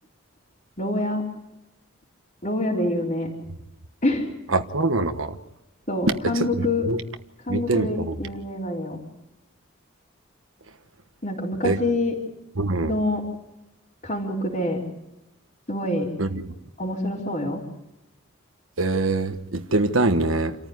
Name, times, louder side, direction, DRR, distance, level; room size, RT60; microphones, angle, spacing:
voice 1, 0.8-1.2 2.4-3.3 4.0-4.3 5.9-6.9 7.4-9.0 11.2-12.2 12.8-13.2 14.0-14.8 15.7-16.1 16.8-17.6, left 1 dB, 35° left, -7 dB, 3.9 m, -26 dB
voice 2, 4.5-5.4 6.2-6.5 6.9-7.0 7.5-8.1 11.6-11.8 12.6-12.9 16.2-16.4 18.8-20.6, right 2 dB, 75° right, 7 dB, 1.3 m, -23 dB
29.0 x 14.5 x 9.6 m, 0.95 s
head